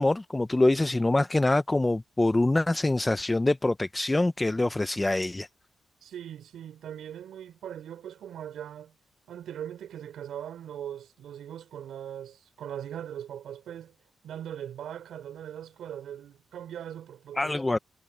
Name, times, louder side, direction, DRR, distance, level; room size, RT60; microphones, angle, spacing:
voice 1, 0.0-5.5 17.4-17.8, left 2 dB, 15° left, 0.5 m, -25 dB
voice 2, 6.0-8.9 9.3-14.0 14.2-17.8, right 10 dB, 90° right, 3.5 m, -40 dB
cardioid pair, 125°, 0 cm